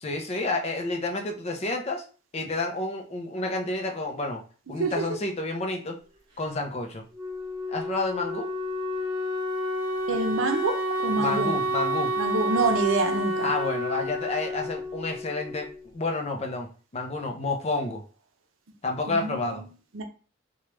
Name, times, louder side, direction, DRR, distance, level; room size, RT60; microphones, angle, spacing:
voice 1, 0.0-2.0 2.3-4.4 4.7-6.0 6.4-7.0 7.7-8.5 11.2-12.1 13.4-15.7 15.9-16.7 16.9-18.0 18.8-19.6, left 2 dB, 30° left, 0.5 m, -29 dB
voice 2, 4.7-5.1 10.1-11.5 12.2-13.5 19.1-19.7 19.9-20.0, right 3 dB, 80° right, 0.6 m, -27 dB
Wind instrument woodwind instrument, 7.1-15.8, equal, 25° right, 1.0 m, -30 dB
3.0 x 2.3 x 3.1 m
head